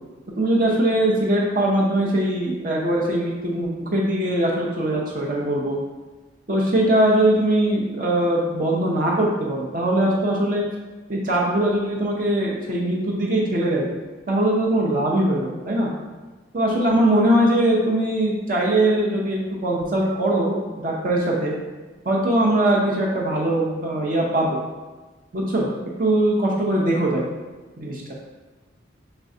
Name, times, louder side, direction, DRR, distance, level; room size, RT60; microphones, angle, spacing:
voice 1, 0.4-5.8 6.5-10.6 11.1-13.9 14.3-15.9 16.5-21.5 22.0-24.6 25.3-25.7 26.0-27.3 27.8-28.0, right 1 dB, 45° right, -3 dB, 0.6 m, -21 dB
5.9 x 3.2 x 2.7 m, 1.3 s
head